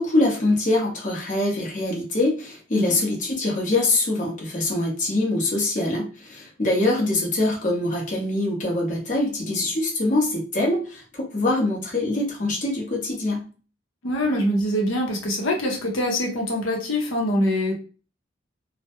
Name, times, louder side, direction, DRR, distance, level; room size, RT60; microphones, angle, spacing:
voice 1, 0.0-13.5, left 2 dB, 40° left, -2 dB, 0.7 m, -24 dB
voice 2, 14.0-17.7, equal, 85° left, 0 dB, 0.6 m, -24 dB
2.2 x 2.0 x 2.7 m, 0.37 s
head